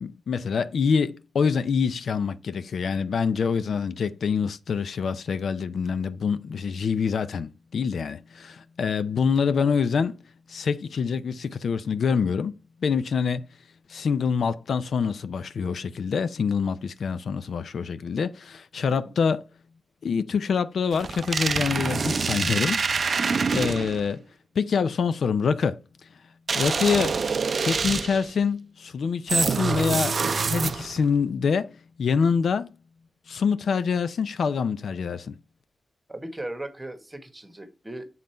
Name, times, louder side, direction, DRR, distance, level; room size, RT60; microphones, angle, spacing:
voice 1, 0.0-10.1 10.5-12.5 12.8-13.5 13.9-19.4 20.0-23.2 23.5-24.2 24.6-25.8 26.5-27.2 27.5-32.8 33.3-35.4, left 6 dB, 70° left, 0.5 m, -26 dB
sound 1, 20.9-24.1 26.5-28.3 29.3-31.0, right 5 dB, 50° right, 0.4 m, -26 dB
voice 2, 36.1-38.1, right 1 dB, 15° right, 1.2 m, -37 dB
7.4 x 4.0 x 4.4 m
wide cardioid pair, 130°, 0 cm